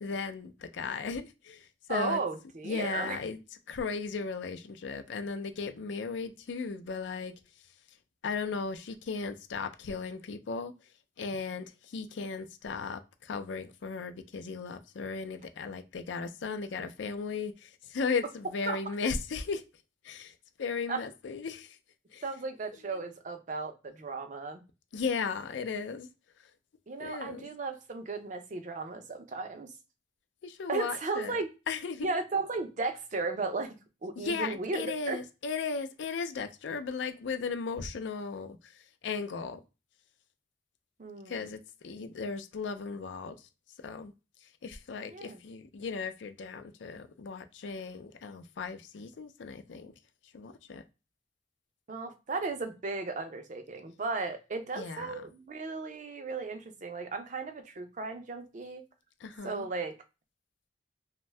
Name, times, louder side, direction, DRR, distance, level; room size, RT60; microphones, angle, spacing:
voice 1, 0.0-2.2 2.6-3.4 3.7-7.3 8.2-10.7 11.2-19.7 20.0-21.8 22.1-22.2 24.9-26.1 26.4-26.5 27.0-27.5 30.4-32.1 34.2-39.6 41.3-43.5 43.8-44.1 44.4-49.9 50.3-50.8 54.8-55.1 59.2-59.7, left 5 dB, 75° left, 0.4 m, -36 dB
voice 2, 1.9-3.2 18.7-18.8 20.9-21.0 22.2-24.6 26.9-29.7 30.7-31.5 32.0-33.8 34.0-35.2 41.0-41.5 45.1-45.4 51.9-58.8 59.4-60.0, right 3 dB, 40° right, 0.4 m, -35 dB
2.6 x 2.1 x 3.2 m
head